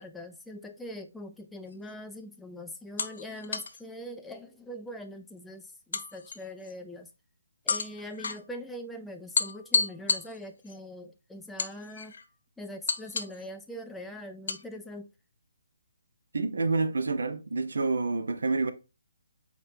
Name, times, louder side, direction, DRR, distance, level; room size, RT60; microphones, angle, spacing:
voice 1, 0.0-7.1 7.7-12.1 12.6-15.1, left 1 dB, 5° left, 0.3 m, -42 dB
sound 1, 1.7-1.9 3.0-3.8 5.9-6.7 7.7-8.4 9.3-10.7 11.6-12.2 12.9-13.4 14.5-14.6, left 4 dB, 65° left, 0.6 m, -31 dB
voice 2, 16.3-18.7, right 3 dB, 80° right, 0.7 m, -28 dB
4.2 x 3.0 x 3.3 m
hypercardioid pair, 155°, 0 cm